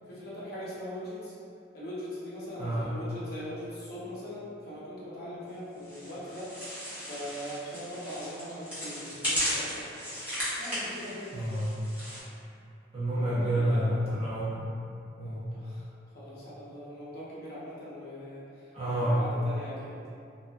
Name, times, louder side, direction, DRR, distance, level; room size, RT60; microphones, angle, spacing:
voice 1, 0.1-1.3 1.7-6.5 7.1-9.9 10.6-11.5 13.1-14.0 15.5-18.7 19.0-20.0, equal, 55° left, -8 dB, 0.7 m, -41 dB
voice 2, 2.6-3.0 11.3-11.8 12.9-14.7 15.2-15.5 18.7-19.3, right 1 dB, 35° right, -11 dB, 0.6 m, -29 dB
sound 1, 5.8-12.2, equal, 10° right, 0.8 m, -36 dB
2.7 x 2.3 x 2.2 m, 2.5 s
head